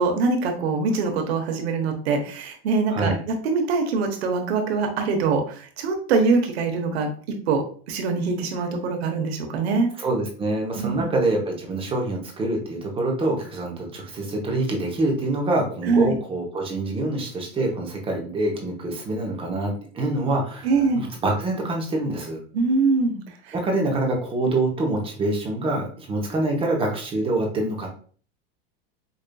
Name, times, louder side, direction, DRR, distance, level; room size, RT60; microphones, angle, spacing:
voice 1, 0.0-7.1 7.5-9.9 10.7-11.0 15.8-16.2 20.6-21.1 22.5-23.5, right 4 dB, 90° right, 4 dB, 1.0 m, -23 dB
voice 2, 2.9-3.2 10.0-20.7 20.9-22.4 23.5-27.9, right 2 dB, 15° right, 0 dB, 0.8 m, -25 dB
5.1 x 2.6 x 2.2 m, 0.43 s
supercardioid pair, 145°, 31 cm